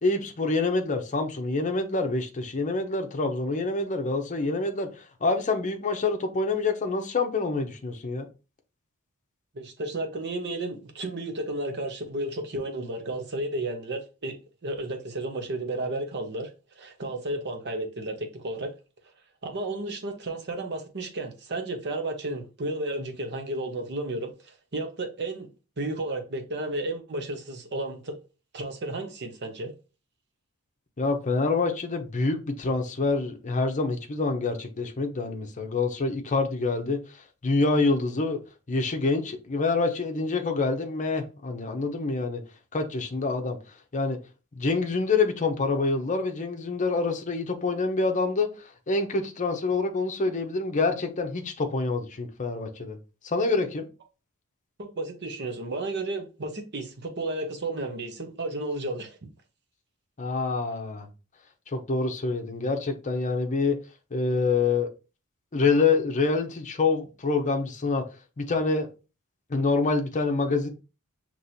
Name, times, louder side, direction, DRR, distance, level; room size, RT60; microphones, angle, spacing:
voice 1, 0.0-8.3 31.0-38.4 38.7-42.4 42.7-43.6 43.9-44.2 44.6-53.0 53.2-53.9 60.2-61.1 61.7-63.8 64.1-64.9 65.5-68.0 68.4-68.9 69.5-70.7, left 3 dB, 35° left, 0.7 m, -26 dB
voice 2, 9.5-16.5 16.8-18.7 19.4-25.5 25.8-28.2 28.5-29.7 54.8-59.2, right 2 dB, 50° right, 0.9 m, -33 dB
5.9 x 3.0 x 2.6 m
head